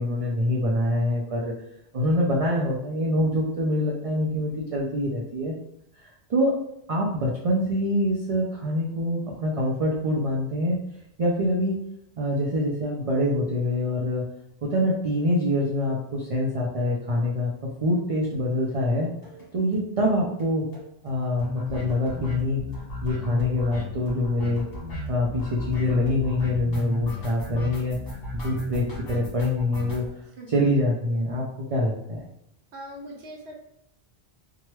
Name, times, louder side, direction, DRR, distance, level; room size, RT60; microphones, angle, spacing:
voice 1, 0.0-1.5 1.9-5.5 6.3-6.6 6.9-10.8 11.2-11.8 12.2-14.2 14.6-17.5 17.8-19.1 19.5-20.6 21.0-22.6 23.0-24.6 25.1-28.0 28.3-30.0 30.5-32.2, left 1 dB, 50° right, -3 dB, 0.4 m, -25 dB
sound 1, 19.2-19.4 19.7-19.8 20.1-20.2 20.4-20.5 20.7-30.1, left 2 dB, 60° left, 1.3 m, -34 dB
voice 2, 27.6-27.9 30.4-30.5 32.7-33.5, equal, 75° right, 0 dB, 1.0 m, -41 dB
2.9 x 2.3 x 3.0 m, 0.78 s
omnidirectional pair, 1.1 m